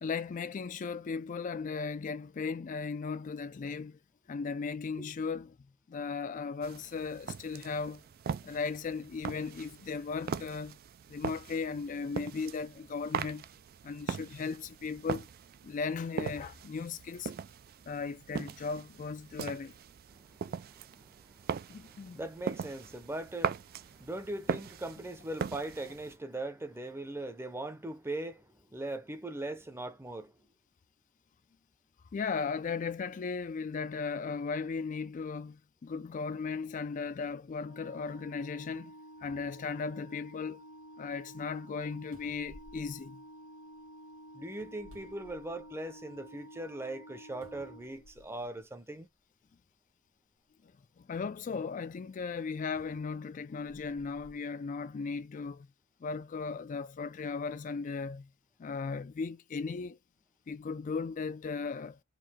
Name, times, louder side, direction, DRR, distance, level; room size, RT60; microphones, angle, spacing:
voice 1, 0.0-4.0 4.3-5.6 5.9-8.0 8.4-10.8 11.1-13.4 13.8-15.3 15.6-17.3 17.9-19.7 21.7-22.2 32.1-38.9 39.2-40.6 41.0-43.2 51.0-55.7 56.0-58.3 58.6-60.0 60.5-62.0, left 5 dB, 40° left, 0.3 m, -37 dB
sound 1, 6.6-26.2, right 6 dB, 50° right, 0.3 m, -40 dB
voice 2, 20.1-30.3 44.3-49.1, right 1 dB, 10° right, 0.7 m, -40 dB
Organ, 37.6-48.5, equal, 75° left, 1.4 m, -51 dB
sound 2, 42.1-43.8 44.5-45.9 46.4-46.5 47.4-48.5 49.5-49.6 52.7-54.4 55.1-55.2, left 1 dB, 90° right, 1.7 m, -58 dB
4.7 x 2.6 x 3.6 m
head